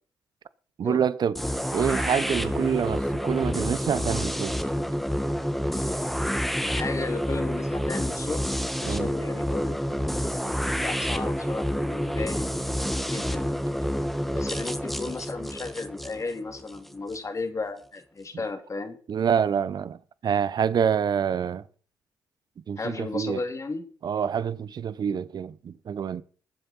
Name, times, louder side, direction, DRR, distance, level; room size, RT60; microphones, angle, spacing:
voice 1, 0.8-1.4 1.7-4.6 8.8-9.1 19.1-20.0 20.2-21.6 22.7-23.4 24.0-26.2, right 7 dB, 55° right, 0.8 m, -26 dB
sound 1, 1.3-17.2, equal, ahead, 1.5 m, -28 dB
voice 2, 6.6-8.5 8.8-9.8 10.8-12.5 13.1-13.5 14.3-19.0 22.8-23.9, left 3 dB, 35° left, 2.3 m, -34 dB
19.5 x 7.8 x 4.2 m
hypercardioid pair, 50°, 9 cm